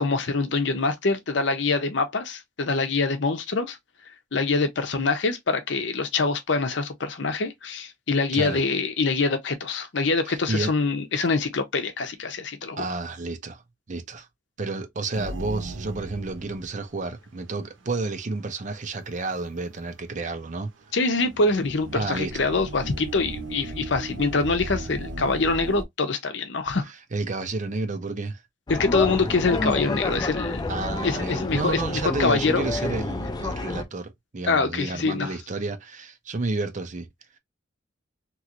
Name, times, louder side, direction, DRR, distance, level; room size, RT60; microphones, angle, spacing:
voice 1, 0.0-3.8 4.3-12.8 20.9-26.9 28.7-30.7 31.0-32.7 34.5-35.3, left 3 dB, 65° left, 0.7 m, -25 dB
voice 2, 10.3-10.7 12.8-13.6 13.9-14.3 14.6-20.7 21.9-22.3 27.1-28.4 30.7-37.1, right 3 dB, 40° right, 0.6 m, -31 dB
sound 1, 15.1-17.1 17.4-17.5 18.4-18.6 20.8-25.8, right 2 dB, 80° right, 0.7 m, -36 dB
sound 2, 28.7-33.8, left 2 dB, 20° left, 0.4 m, -29 dB
3.0 x 2.5 x 2.8 m
head